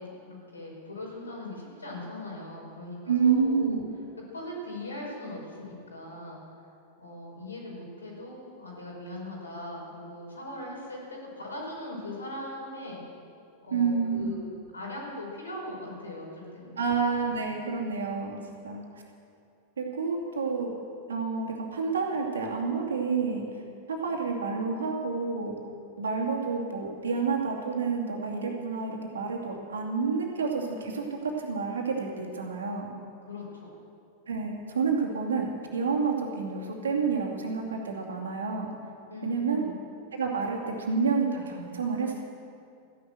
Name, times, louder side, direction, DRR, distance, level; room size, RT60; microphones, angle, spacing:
voice 1, 0.0-3.8 4.3-6.4 7.0-13.0 13.6-14.4 14.7-16.8 33.2-33.7 39.1-39.7, left 1 dB, 75° left, -3 dB, 5.0 m, -40 dB
voice 2, 3.1-3.8 13.7-14.4 16.8-18.4 18.6-18.8 19.8-20.7 21.1-23.4 23.9-25.5 26.0-32.9 34.3-38.7 39.2-39.6 40.1-42.2, right 5 dB, 70° right, 0 dB, 2.6 m, -29 dB
15.0 x 11.0 x 7.6 m, 2.5 s
figure-of-eight pair, 90°, 0 cm